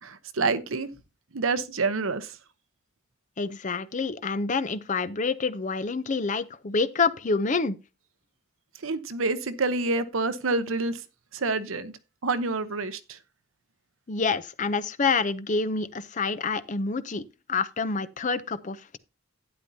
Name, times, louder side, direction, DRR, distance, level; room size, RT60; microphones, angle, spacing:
voice 1, 0.0-0.9 1.3-2.4 8.8-11.0 11.3-11.9 12.2-13.2, right 3 dB, 80° right, 0.9 m, -27 dB
voice 2, 3.4-7.8 14.1-17.2 17.5-19.0, left 4 dB, 40° left, 0.6 m, -27 dB
11.5 x 9.7 x 2.7 m
head